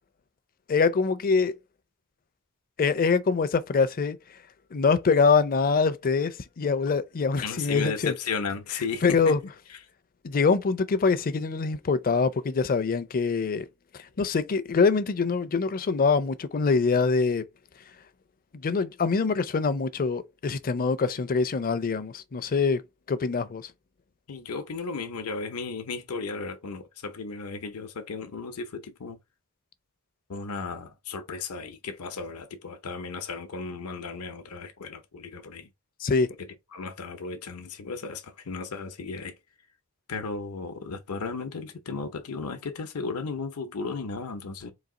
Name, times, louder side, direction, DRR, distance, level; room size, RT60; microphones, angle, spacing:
voice 1, 0.7-1.6 2.8-4.2 4.7-8.1 9.0-9.4 10.2-13.6 14.2-17.4 18.6-22.8 23.1-23.6 36.0-36.3, left 4 dB, 40° left, 0.5 m, -24 dB
voice 2, 7.4-9.3 9.7-9.8 24.3-29.2 30.3-35.7 36.4-39.4 40.1-44.7, left 4 dB, 85° left, 0.7 m, -35 dB
4.1 x 2.7 x 3.6 m
head